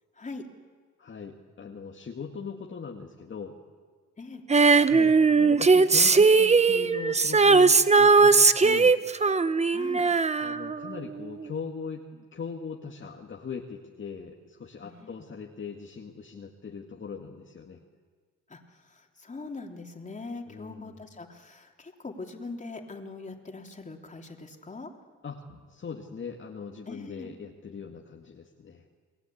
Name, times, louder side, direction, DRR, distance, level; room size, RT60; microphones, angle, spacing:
voice 1, 1.0-3.6 4.8-9.0 10.4-17.8 20.5-21.0 25.2-28.8, left 5 dB, 40° left, 0 dB, 2.2 m, -40 dB
Female singing, 4.5-11.1 11.4-11.5, right 4 dB, 20° right, 1.0 m, -19 dB
voice 2, 9.7-10.1 14.8-15.1 18.5-18.6 18.9-24.9 26.9-27.3, left 3 dB, 25° left, 2 dB, 3.5 m, -41 dB
30.0 x 19.0 x 8.7 m, 1.5 s
cardioid pair, 90°, 30 cm